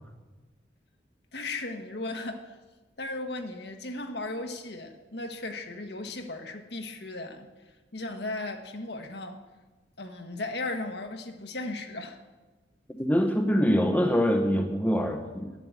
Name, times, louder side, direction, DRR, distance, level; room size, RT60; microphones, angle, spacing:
voice 1, 1.3-2.5 3.0-7.5 7.9-9.4 10.0-12.2, left 2 dB, 60° left, 5 dB, 1.4 m, -36 dB
voice 2, 12.9-15.5, equal, 10° left, 4 dB, 0.9 m, -24 dB
11.0 x 9.5 x 8.2 m, 1.2 s
head